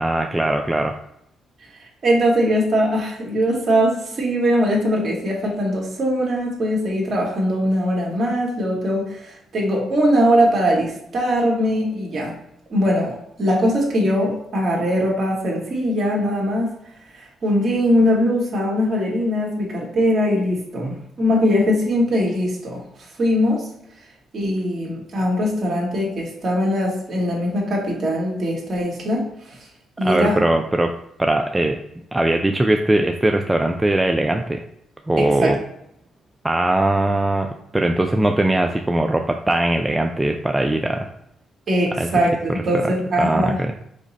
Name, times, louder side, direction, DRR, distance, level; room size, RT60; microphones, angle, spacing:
voice 1, 0.0-1.0 30.0-30.9 31.2-31.8 32.1-34.6 35.1-35.6 36.4-37.5 37.7-41.1 42.0-42.1 43.2-43.7, right 1 dB, 15° right, 4 dB, 0.3 m, -20 dB
voice 2, 1.8-12.3 12.7-16.8 17.1-22.8 23.2-23.7 24.3-29.6 30.0-30.4 35.2-35.6 41.7-43.6, equal, 50° right, -2 dB, 1.5 m, -21 dB
5.0 x 2.0 x 4.1 m, 0.76 s
cardioid pair, 90°, 0 cm